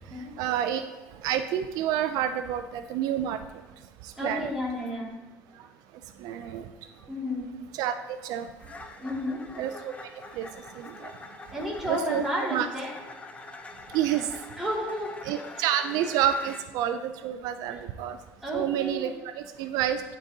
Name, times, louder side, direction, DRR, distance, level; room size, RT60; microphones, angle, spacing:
voice 1, 0.1-0.9 1.2-3.4 4.0-4.5 6.2-6.7 7.7-8.5 9.6-9.9 10.3-11.1 11.8-12.2 12.5-12.7 13.9-14.3 15.2-18.2 18.5-20.0, right 10 dB, 75° right, 9 dB, 0.4 m, -29 dB
sound 1, 2.9-3.1 3.5-3.8 4.2-4.5 4.9-5.1 5.5-5.7 6.4-6.5 6.9-7.1 8.6-16.7, left 3 dB, 20° left, 0.6 m, -45 dB
voice 2, 4.2-5.1 7.1-7.5 9.0-9.4 11.5-12.9 14.6-15.4 17.7-17.8 18.4-19.2, equal, 5° right, -4 dB, 2.1 m, -32 dB
11.5 x 3.9 x 2.8 m, 1.1 s
cardioid pair, 110°, 7 cm